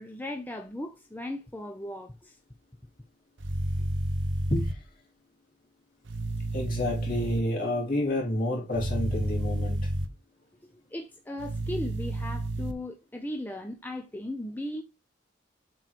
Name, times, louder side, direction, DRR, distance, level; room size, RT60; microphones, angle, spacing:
voice 1, 0.0-2.4 10.7-14.8, left 1 dB, 10° left, 0.5 m, -37 dB
sound 1, 3.4-4.7 6.1-7.4 8.7-10.1 11.4-12.7, right 1 dB, 75° right, 0.9 m, -30 dB
voice 2, 4.5-4.8 6.5-9.9, left 1 dB, 45° left, 3.3 m, -29 dB
7.7 x 3.2 x 4.5 m
head